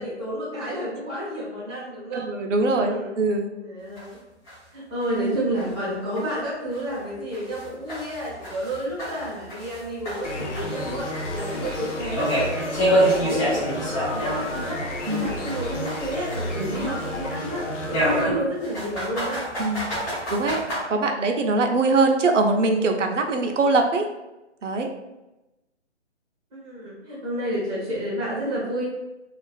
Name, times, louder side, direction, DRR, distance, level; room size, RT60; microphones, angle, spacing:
voice 1, 0.0-2.3 2.7-3.1 3.6-4.2 4.7-19.5 26.5-28.9, equal, 10° right, -9 dB, 0.6 m, -31 dB
voice 2, 2.1-3.5 5.2-5.4 15.1-15.3 16.6-17.0 19.6-19.9 20.3-20.6 20.9-24.1 24.6-24.9, right 3 dB, 85° right, 4 dB, 0.5 m, -22 dB
sound 1, 4.0-4.1 4.5-4.6 5.0-5.1 5.6-5.7 6.2-6.3 6.7-6.8 7.3-9.8 10.0-14.7 15.0-17.1 17.9-20.8, right 1 dB, 15° left, 1.1 m, -27 dB
sound 2, 10.2-18.2, left 1 dB, 75° left, 0.6 m, -31 dB
2.4 x 2.3 x 2.2 m, 0.99 s
figure-of-eight pair, 145°, 36 cm